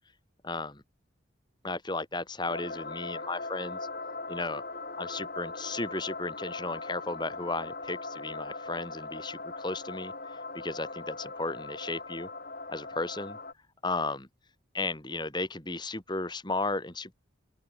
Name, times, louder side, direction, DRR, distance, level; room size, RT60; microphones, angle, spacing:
voice 1, 0.4-0.8 1.6-3.8 4.3-4.6 5.0-12.3 12.7-13.4 13.8-14.3 14.7-17.1, left 3 dB, 20° left, 2.8 m, -34 dB
sound 1, 2.5-13.5, left 3 dB, 45° left, 4.0 m, -40 dB
open air
head